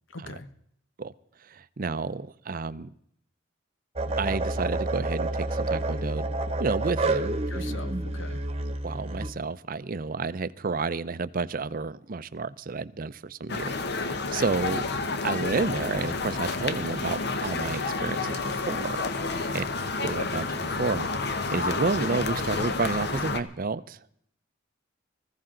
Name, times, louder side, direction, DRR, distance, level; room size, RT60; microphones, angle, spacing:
voice 1, 0.1-0.5 7.5-8.4 19.3-19.6, left 3 dB, 80° left, 11 dB, 1.2 m, -41 dB
voice 2, 1.5-2.9 4.2-6.3 6.6-7.4 8.8-14.9 15.2-18.4 18.7-19.0 19.5-19.6 20.0-24.0, right 4 dB, 45° right, 15 dB, 0.6 m, -30 dB
sound 1, 4.0-9.3, right 2 dB, 30° right, 1.1 m, -29 dB
sound 2, 13.5-23.4, left 3 dB, 55° left, 1.1 m, -30 dB
20.0 x 15.0 x 3.9 m, 0.69 s
head